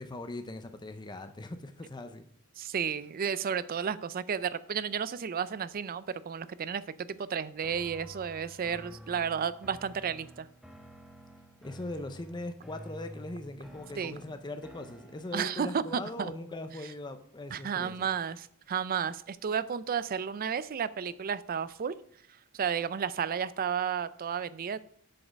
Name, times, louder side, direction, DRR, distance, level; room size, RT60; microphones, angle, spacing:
voice 1, 0.0-2.3 11.6-18.1, left 2 dB, 20° left, 8 dB, 0.5 m, -40 dB
voice 2, 2.6-10.5 14.0-14.2 15.3-16.3 17.5-21.9 22.5-24.8, right 7 dB, 40° right, 16 dB, 0.4 m, -32 dB
sound 1, 7.6-15.7, equal, ahead, 1.1 m, -50 dB
7.8 x 6.4 x 5.1 m, 0.66 s
head